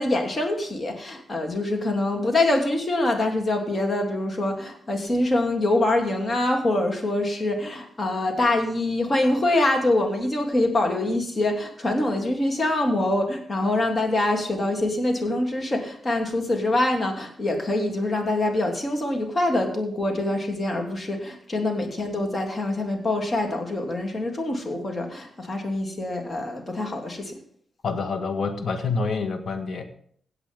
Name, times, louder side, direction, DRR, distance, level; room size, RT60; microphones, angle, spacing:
voice 1, 0.0-27.4, left 2 dB, 40° left, 2 dB, 3.0 m, -25 dB
voice 2, 27.8-29.8, left 4 dB, 65° left, 7 dB, 1.7 m, -27 dB
16.5 x 8.2 x 3.7 m, 0.62 s
cardioid pair, 60°, 0 cm